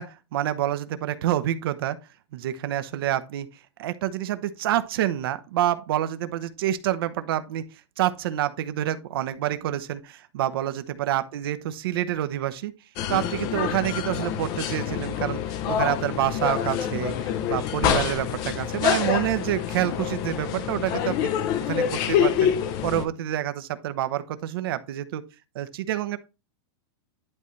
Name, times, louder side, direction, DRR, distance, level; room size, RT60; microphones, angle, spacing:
voice 1, 0.0-2.0 2.3-3.5 3.8-7.6 8.0-12.7 13.1-21.3 21.6-22.5 22.8-25.2 25.5-26.2, right 12 dB, 60° right, 0.9 m, -27 dB
sound 1, 13.0-23.1, left 9 dB, 30° left, 0.6 m, -26 dB
11.0 x 4.0 x 3.2 m
supercardioid pair, 165°, 14 cm